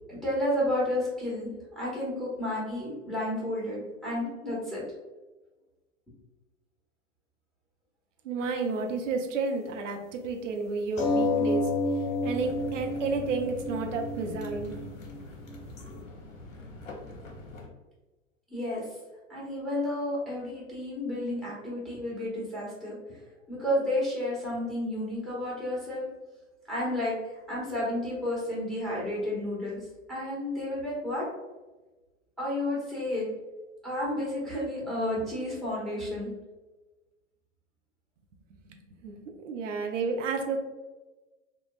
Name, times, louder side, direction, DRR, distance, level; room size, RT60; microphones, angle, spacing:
voice 1, 0.1-4.8 18.5-18.8 19.3-23.2 23.5-26.1 26.7-27.1 27.5-31.2 32.4-33.3 33.8-36.3, left 1 dB, ahead, -6 dB, 1.5 m, -31 dB
voice 2, 8.2-11.7 12.2-14.8 38.7-40.6, right 4 dB, 70° right, 4 dB, 0.6 m, -31 dB
sound 1, 11.0-16.0, left 2 dB, 20° left, 0.4 m, -30 dB
sound 2, 12.2-17.7, left 2 dB, 80° left, 0.8 m, -45 dB
3.6 x 2.3 x 2.3 m, 1.1 s
hypercardioid pair, 100°, 39 cm